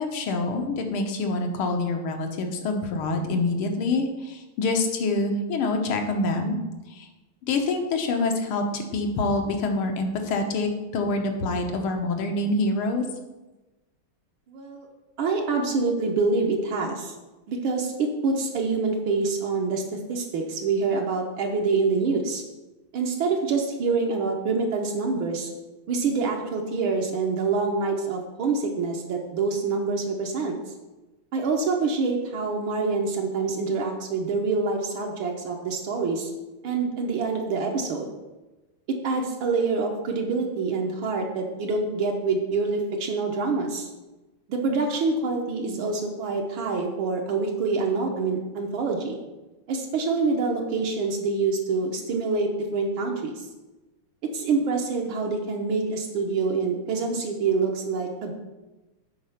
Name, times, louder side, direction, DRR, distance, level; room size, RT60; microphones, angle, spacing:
voice 1, 0.0-6.6 6.9-7.1 7.5-13.0, left 2 dB, 80° left, 4 dB, 1.8 m, -26 dB
voice 2, 14.5-14.9 15.2-17.1 17.5-22.4 22.9-25.5 25.9-30.6 31.3-36.3 36.6-38.1 38.9-43.9 44.5-49.2 49.7-53.4 54.3-58.3, right 4 dB, 70° right, 1 dB, 1.6 m, -26 dB
7.8 x 4.2 x 5.6 m, 1.1 s
omnidirectional pair, 2.4 m